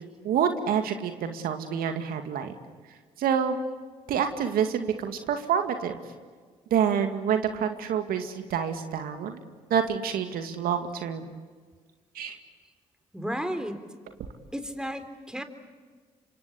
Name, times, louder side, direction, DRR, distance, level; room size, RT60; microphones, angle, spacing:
voice 1, 0.2-2.5 3.2-3.6 4.1-6.0 6.7-9.4 9.7-11.3 12.1-12.4, right 8 dB, 75° right, 7 dB, 2.2 m, -27 dB
voice 2, 13.1-14.0 14.5-15.4, equal, 5° right, 8 dB, 4.0 m, -33 dB
27.0 x 25.5 x 8.6 m, 1.5 s
supercardioid pair, 50°, 15 cm